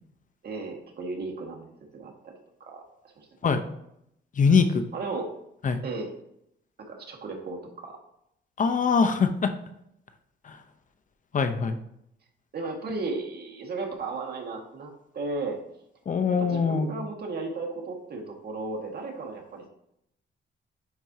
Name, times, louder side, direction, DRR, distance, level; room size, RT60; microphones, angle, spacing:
voice 1, 0.4-2.3 2.7-2.8 3.2-3.3 4.9-5.3 5.8-6.1 6.9-7.9 12.5-15.6 16.4-19.7, right 3 dB, 55° right, 1 dB, 1.9 m, -35 dB
voice 2, 4.4-4.8 5.6-5.8 8.6-9.5 10.4-10.6 11.3-11.8 16.1-16.9, left 5 dB, 40° left, 8 dB, 0.8 m, -23 dB
10.5 x 4.4 x 2.8 m, 0.77 s
cardioid pair, 90°, 20 cm